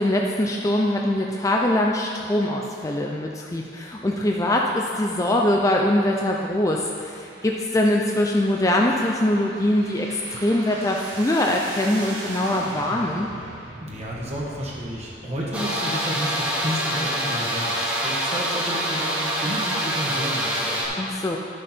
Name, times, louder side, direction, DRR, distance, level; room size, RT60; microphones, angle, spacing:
voice 1, 0.0-13.3 21.0-21.4, left 1 dB, 15° left, 0 dB, 0.4 m, -23 dB
sound 1, 3.9-15.6, right 2 dB, 65° right, 1.4 m, -41 dB
voice 2, 13.8-21.0, equal, 35° right, -5 dB, 1.3 m, -31 dB
sound 2, 15.5-20.9, equal, 10° right, 1.7 m, -25 dB
11.0 x 6.3 x 4.4 m, 2.4 s
head